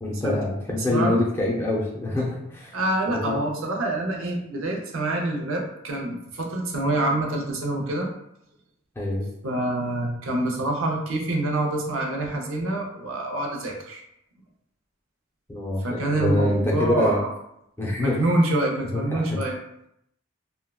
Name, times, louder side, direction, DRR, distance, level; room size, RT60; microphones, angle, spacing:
voice 1, 0.0-2.8 3.1-3.4 9.0-9.3 15.5-17.2 17.8-18.3 19.1-19.4, left 1 dB, 10° left, -4 dB, 0.5 m, -25 dB
voice 2, 0.9-1.2 2.7-8.1 9.4-14.0 15.8-17.3 18.0-19.6, right 1 dB, 80° right, 0 dB, 0.6 m, -26 dB
3.4 x 2.2 x 2.3 m, 0.77 s
head